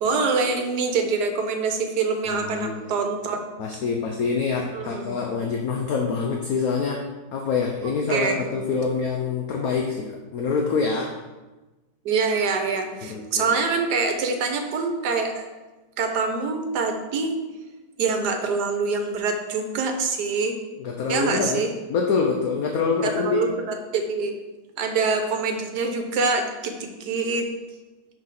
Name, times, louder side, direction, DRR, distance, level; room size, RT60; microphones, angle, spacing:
voice 1, 0.0-3.4 4.7-5.2 8.1-8.4 12.0-15.5 16.0-17.4 18.0-20.5 21.1-21.7 23.0-24.3 24.8-27.4, right 4 dB, 65° right, 5 dB, 1.4 m, -25 dB
voice 2, 2.3-2.8 3.6-11.2 13.0-13.6 20.8-21.6 21.9-23.5, left 5 dB, 60° left, 1 dB, 1.1 m, -26 dB
5.9 x 4.9 x 5.9 m, 1.1 s
omnidirectional pair, 2.0 m